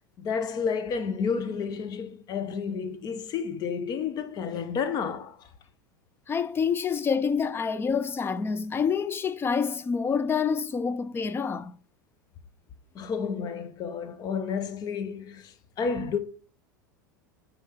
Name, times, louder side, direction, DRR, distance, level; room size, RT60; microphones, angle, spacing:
voice 1, 0.2-5.4 12.9-15.5 15.8-16.2, left 6 dB, 40° left, 1.0 m, -31 dB
voice 2, 6.3-11.7, left 6 dB, 20° left, 0.6 m, -27 dB
9.4 x 4.4 x 4.2 m
figure-of-eight pair, 80°, 11 cm